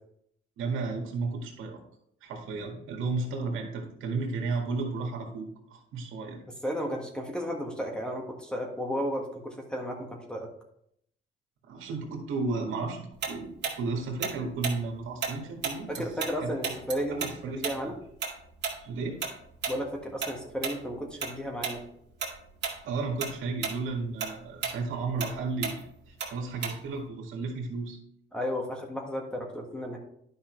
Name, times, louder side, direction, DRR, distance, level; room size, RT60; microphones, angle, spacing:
voice 1, 0.6-1.8 2.2-6.4 11.7-16.7 17.1-17.9 18.8-19.2 22.8-28.0, right 3 dB, 85° right, 2 dB, 1.9 m, -33 dB
voice 2, 6.6-10.5 15.9-17.3 17.5-17.9 19.7-21.8 28.3-30.0, equal, 5° left, 0 dB, 1.6 m, -33 dB
Tick-tock, 13.2-16.4 16.6-21.3 21.6-21.8 22.2-22.8 23.1-27.0, right 6 dB, 60° right, 2.0 m, -34 dB
10.0 x 5.6 x 3.2 m, 0.71 s
cardioid pair, 90°, 20 cm